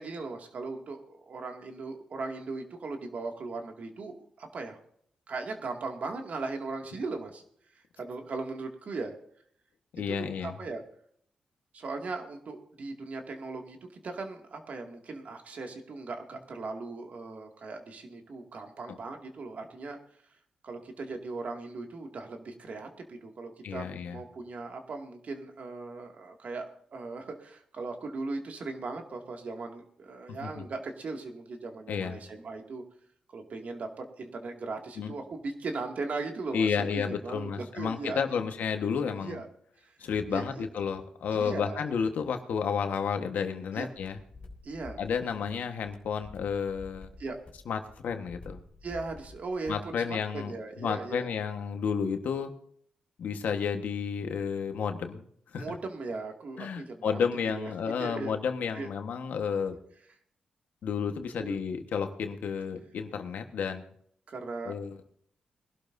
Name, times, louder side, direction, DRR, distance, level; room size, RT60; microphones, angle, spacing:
voice 1, 0.0-4.8 5.3-7.4 7.7-9.1 10.1-10.8 11.7-20.0 20.6-26.7 26.9-32.8 33.3-38.4 39.2-39.5 39.8-40.7 41.3-41.9 43.7-43.9 44.6-45.0 47.2-47.4 48.8-51.3 55.5-57.7 58.0-58.4 58.7-58.9 61.3-61.6 64.3-64.8, right 3 dB, 60° right, 3 dB, 2.2 m, -38 dB
voice 2, 9.9-10.5 18.9-19.0 23.6-24.2 30.4-30.6 31.9-32.2 35.0-35.1 36.5-39.4 40.0-44.2 45.0-47.1 47.7-48.6 49.7-50.5 50.8-52.5 53.2-55.3 55.5-55.6 56.6-59.8 60.8-63.8 64.6-65.0, left 6 dB, 80° left, 6 dB, 1.3 m, -31 dB
sound 1, 44.0-49.9, left 2 dB, 45° left, 3.4 m, -50 dB
22.0 x 12.0 x 2.7 m, 0.65 s
cardioid pair, 60°, 3 cm